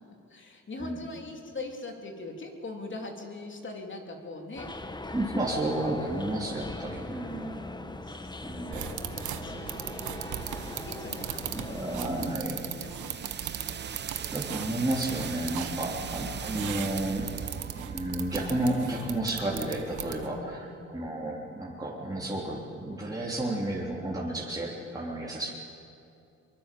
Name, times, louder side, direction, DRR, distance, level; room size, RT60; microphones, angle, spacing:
voice 1, 0.3-4.7 8.0-10.4 10.7-12.4 12.7-14.0 19.2-19.4 20.2-21.0, left 2 dB, 40° left, 2 dB, 3.4 m, -43 dB
sound 1, 4.6-12.3, left 2 dB, 15° left, 1.2 m, -40 dB
voice 2, 5.1-7.9 8.4-8.9 11.5-12.6 14.3-17.3 17.8-25.5, right 1 dB, 10° right, -5 dB, 3.5 m, -32 dB
sound 2, 8.7-20.5, right 7 dB, 35° right, 0.8 m, -42 dB
sound 3, 8.7-20.4, right 10 dB, 75° right, 1.4 m, -39 dB
23.5 x 23.0 x 7.7 m, 2.6 s
cardioid pair, 90°, 30 cm